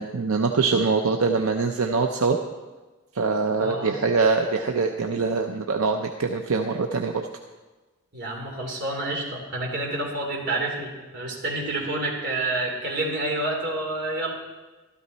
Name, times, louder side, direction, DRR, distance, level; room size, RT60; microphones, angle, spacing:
voice 1, 0.0-2.4 3.1-7.3, right 4 dB, 80° right, 4 dB, 0.7 m, -23 dB
voice 2, 3.6-3.9 8.1-14.3, right 2 dB, 55° right, -1 dB, 3.1 m, -28 dB
13.0 x 13.0 x 4.1 m, 1.2 s
head